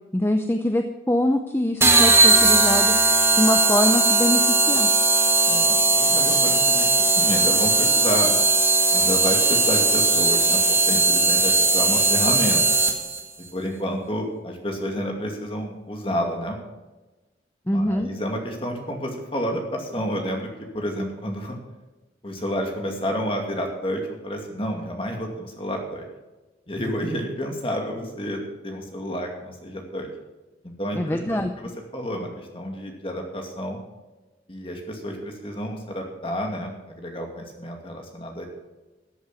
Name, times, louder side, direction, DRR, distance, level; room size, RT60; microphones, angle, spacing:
voice 1, 0.1-2.9 3.3-4.9 17.7-18.1 30.9-31.5, left 1 dB, 10° left, 5 dB, 0.6 m, -23 dB
sound 1, 1.8-13.2, right 3 dB, 15° right, 1.6 m, -18 dB
voice 2, 5.5-8.4 8.9-12.6 13.5-16.6 17.6-21.6 22.2-26.1 26.7-30.1 30.8-33.8 34.5-38.5, equal, 30° left, 2 dB, 2.3 m, -30 dB
14.5 x 7.9 x 6.1 m, 1.1 s
head